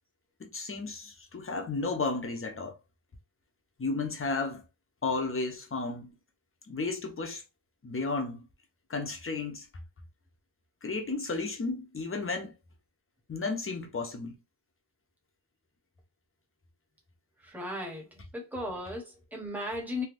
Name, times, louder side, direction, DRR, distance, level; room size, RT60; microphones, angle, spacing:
voice 1, 0.4-2.8 3.8-4.6 5.0-6.1 6.7-7.4 7.8-8.5 8.9-9.7 10.8-12.5 13.3-14.4, left 3 dB, 25° left, 0.6 m, -33 dB
voice 2, 17.4-18.0 18.3-20.0, left 1 dB, 5° right, 0.9 m, -36 dB
3.4 x 2.6 x 2.5 m
wide cardioid pair, 170°, 49 cm